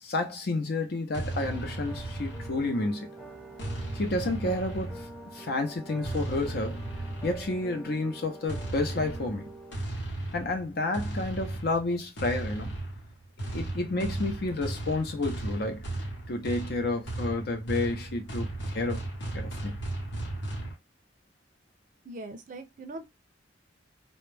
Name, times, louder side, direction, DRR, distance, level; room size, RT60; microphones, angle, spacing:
voice 1, 0.0-3.1 3.9-6.8 7.2-9.5 10.3-12.7 13.5-15.8 16.3-19.0 19.3-19.8, left 2 dB, 60° left, 0.7 m, -30 dB
sound 1, 1.1-2.9 3.6-5.3 6.0-7.7 8.5-20.7, right 2 dB, 85° left, 1.0 m, -36 dB
sound 2, 1.3-9.8, right 2 dB, ahead, 0.6 m, -46 dB
voice 2, 22.1-23.0, right 2 dB, 45° right, 0.5 m, -41 dB
2.3 x 2.1 x 3.2 m
head